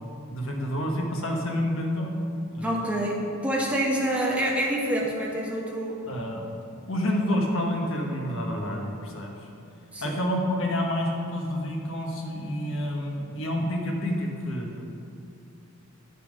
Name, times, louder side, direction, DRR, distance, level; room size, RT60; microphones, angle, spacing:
voice 1, 0.3-2.1 2.5-2.8 6.0-6.5 6.9-9.3 10.0-14.7, left 1 dB, 60° left, 0 dB, 1.3 m, -28 dB
voice 2, 2.6-6.0 9.9-10.2, right 1 dB, 5° right, -3 dB, 1.1 m, -27 dB
8.5 x 6.9 x 5.1 m, 2.5 s
head